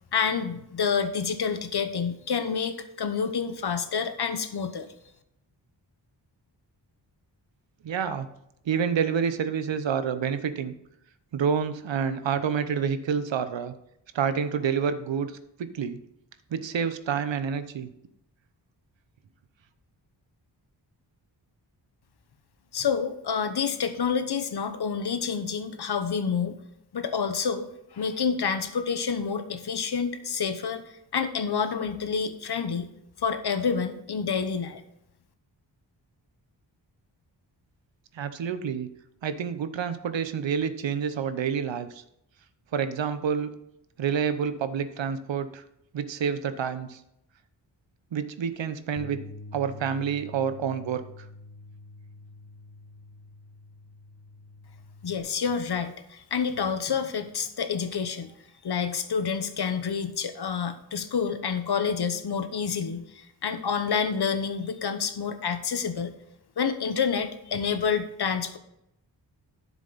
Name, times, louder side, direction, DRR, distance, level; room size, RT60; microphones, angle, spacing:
voice 1, 0.1-4.9 22.7-26.6 26.9-32.9 33.2-34.8 55.0-58.3 58.6-66.1 66.6-68.6, left 6 dB, 60° left, 9 dB, 1.0 m, -28 dB
voice 2, 7.8-8.3 8.7-10.7 11.3-13.7 14.1-16.0 16.5-17.9 38.1-38.9 39.2-42.0 42.7-43.5 44.0-45.6 45.9-47.0 48.1-49.2 49.5-51.0, right 7 dB, 80° right, 12 dB, 0.9 m, -28 dB
Bass guitar, 49.0-55.2, left 3 dB, 40° left, 1.4 m, -46 dB
9.8 x 7.3 x 4.0 m, 0.80 s
wide cardioid pair, 100°, 44 cm